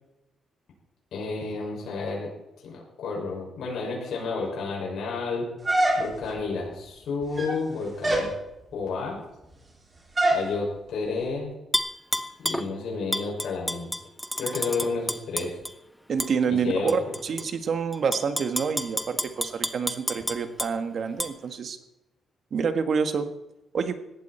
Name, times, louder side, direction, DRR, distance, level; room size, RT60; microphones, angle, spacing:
voice 1, 1.1-2.3 2.6-5.5 6.0-8.3 8.7-9.2 10.3-11.5 12.4-13.9 14.4-15.5 16.5-16.9, left 4 dB, 70° left, -3 dB, 6.4 m, -31 dB
sound 1, 5.6-6.4 7.2-7.6 8.0-8.3 10.2-10.5, right 1 dB, 20° right, 4.5 m, -24 dB
Tap / Glass, 11.7-12.7 13.1-15.7 16.2-16.3 16.9-17.4 17.9-20.7 21.2-21.3, equal, 5° left, 1.0 m, -29 dB
voice 2, 16.1-21.8 22.5-23.3 23.7-24.0, right 6 dB, 50° right, 8 dB, 1.7 m, -27 dB
20.0 x 15.0 x 4.5 m, 0.91 s
cardioid pair, 120°, 0 cm